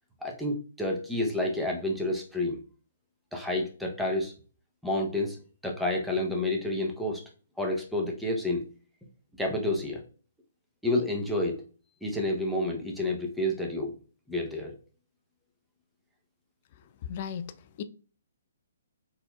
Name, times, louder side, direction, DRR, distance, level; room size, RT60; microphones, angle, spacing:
voice 1, 0.2-2.6 3.3-4.3 4.8-5.4 5.6-7.2 7.6-8.6 9.4-10.0 10.8-11.6 12.0-13.9 14.3-14.7, left 1 dB, ahead, 0.8 m, -29 dB
voice 2, 17.0-17.8, left 8 dB, 45° left, 0.3 m, -36 dB
4.1 x 2.8 x 2.3 m
hypercardioid pair, 135°, 0 cm